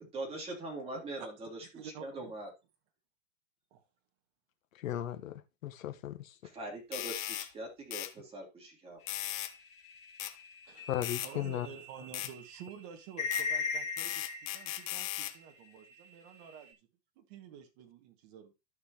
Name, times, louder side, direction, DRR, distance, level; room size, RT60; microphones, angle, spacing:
voice 1, 0.0-2.5 6.4-9.0, right 2 dB, 15° right, 3.0 m, -42 dB
voice 2, 0.9-1.3 1.7-2.3 3.7-3.8 10.7-10.9 11.2-16.8 17.2-18.5, right 7 dB, 40° right, 1.8 m, -50 dB
voice 3, 4.7-6.3 10.9-11.7, left 12 dB, 75° left, 1.3 m, -36 dB
sound 1, 6.9-7.5 7.9-8.1 9.1-9.5 10.2-10.3 11.0-11.3 12.1-12.3 13.3-13.5 14.0-15.3, left 14 dB, 35° left, 0.9 m, -37 dB
sound 2, 9.2-15.4 15.8-16.7, left 5 dB, 15° left, 2.8 m, -40 dB
14.0 x 5.6 x 2.9 m
supercardioid pair, 155°, 40 cm